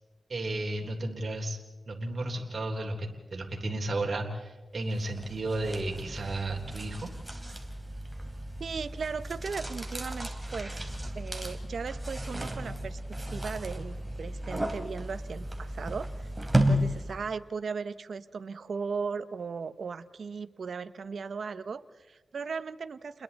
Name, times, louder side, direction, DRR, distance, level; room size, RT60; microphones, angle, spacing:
voice 1, 0.3-1.6 1.9-7.1, right 2 dB, 55° right, 0 dB, 3.5 m, -33 dB
sound 1, 4.9-17.3, equal, 15° right, 3.6 m, -34 dB
voice 2, 8.6-10.8 11.1-16.3 16.7-23.2, right 5 dB, 75° right, 13 dB, 0.8 m, -37 dB
29.5 x 21.5 x 4.2 m, 1.2 s
cardioid pair, 60°, 0 cm